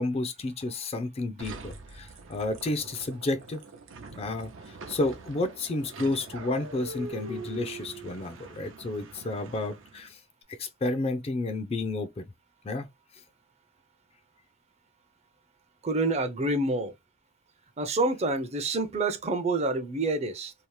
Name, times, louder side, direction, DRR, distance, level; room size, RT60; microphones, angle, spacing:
voice 1, 0.0-3.6 4.1-4.5 4.9-10.2 10.6-12.3 12.6-12.9, left 2 dB, 30° left, 0.4 m, -31 dB
sound 1, 1.4-10.1, right 3 dB, 90° right, 0.6 m, -43 dB
voice 2, 15.8-16.9 17.8-20.5, right 2 dB, 35° right, 0.5 m, -27 dB
2.8 x 2.0 x 3.0 m
head